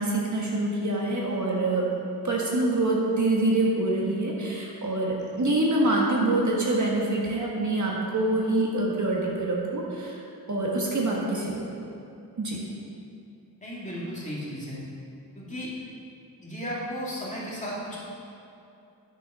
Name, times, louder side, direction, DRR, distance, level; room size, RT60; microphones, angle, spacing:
voice 1, 0.0-1.9 2.2-10.2 10.5-11.7 12.4-12.6, right 2 dB, 45° right, -3 dB, 1.5 m, -25 dB
voice 2, 13.6-14.8 15.4-15.7 16.4-18.0, equal, 20° left, -7 dB, 2.4 m, -34 dB
10.0 x 6.9 x 5.6 m, 2.6 s
wide cardioid pair, 135°, 40 cm